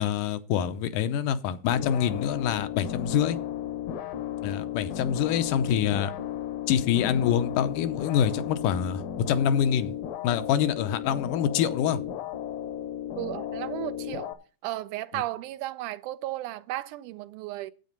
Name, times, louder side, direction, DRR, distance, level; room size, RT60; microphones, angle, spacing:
voice 1, 0.0-3.4 4.4-6.1 6.7-9.9 10.2-12.0, left 9 dB, 85° left, 2.4 m, -26 dB
sound 1, 1.7-14.3, left 10 dB, 70° left, 1.7 m, -34 dB
voice 2, 13.2-14.3 14.6-17.7, right 15 dB, 85° right, 2.1 m, -34 dB
9.5 x 8.5 x 5.4 m
omnidirectional pair, 3.6 m